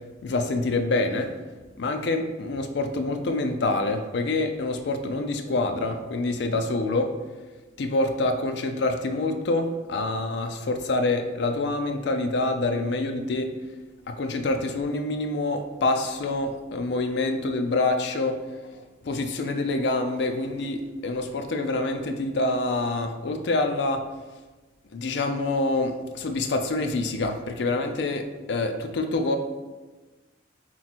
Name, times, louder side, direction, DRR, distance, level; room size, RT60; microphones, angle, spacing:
voice 1, 0.2-1.3 1.8-7.1 7.8-13.5 14.1-18.4 18.7-24.0 24.9-29.4, left 2 dB, 70° left, 6 dB, 0.4 m, -26 dB
4.2 x 3.0 x 4.1 m, 1.3 s
head